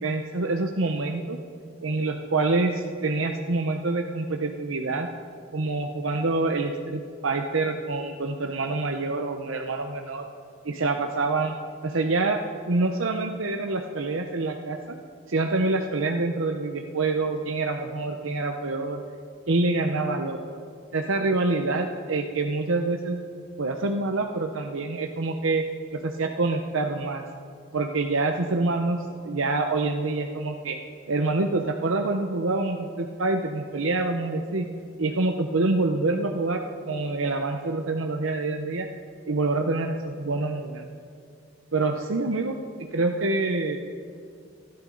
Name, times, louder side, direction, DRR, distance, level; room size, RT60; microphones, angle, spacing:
voice 1, 0.0-1.4 1.8-5.1 5.5-10.2 10.6-11.6 11.8-12.4 12.7-14.9 15.3-19.0 19.5-20.4 20.9-23.2 23.6-25.6 26.0-27.2 27.7-29.0 29.2-30.8 31.1-34.7 35.0-36.6 36.9-38.9 39.3-40.9 41.7-42.5 42.9-43.8, right 3 dB, 90° right, 3 dB, 0.9 m, -26 dB
30.0 x 11.5 x 4.0 m, 2.3 s
head